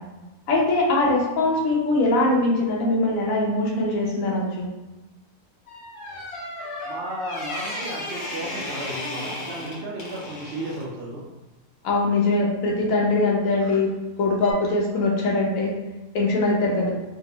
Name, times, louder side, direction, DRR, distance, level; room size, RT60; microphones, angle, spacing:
voice 1, 0.5-4.7 11.8-13.9 14.2-15.7 16.1-16.9, left 2 dB, 65° left, -2 dB, 1.1 m, -22 dB
sound 1, 5.7-10.9 13.6-13.9 14.4-14.5, left 1 dB, 80° left, 1.5 m, -34 dB
voice 2, 6.8-11.2, right 1 dB, 80° right, -4 dB, 0.5 m, -34 dB
3.4 x 2.3 x 2.8 m, 1.1 s
omnidirectional pair, 1.6 m